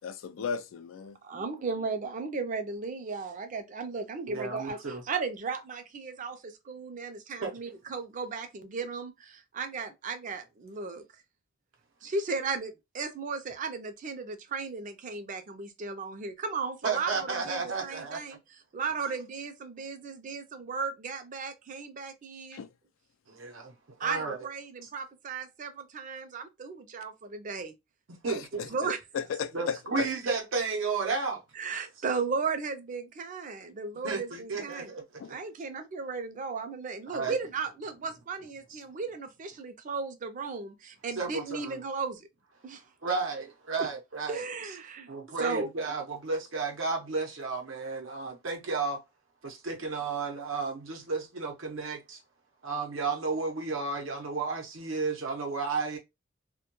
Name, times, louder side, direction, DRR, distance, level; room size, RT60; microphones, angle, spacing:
voice 1, 0.0-1.2 22.5-22.7 28.3-30.1 35.2-35.3, left 6 dB, 80° left, 0.3 m, -35 dB
voice 2, 1.2-11.0 12.0-18.4 18.7-22.6 24.0-27.7 28.7-29.0 29.9-30.1 31.6-34.9 35.3-42.3 42.6-42.8 44.3-45.1 45.4-45.7, right 4 dB, 40° right, 0.4 m, -35 dB
voice 3, 4.3-5.0 7.4-7.5 16.8-18.4 19.0-19.1 23.3-23.7 24.0-24.4 28.1-28.8 29.5-31.4 34.0-35.4 37.1-37.4 38.7-38.8 41.1-41.8 43.0-44.4 45.1-49.0 49.4-52.2 52.6-56.0, right 4 dB, 80° right, 0.7 m, -33 dB
2.2 x 2.2 x 2.9 m
head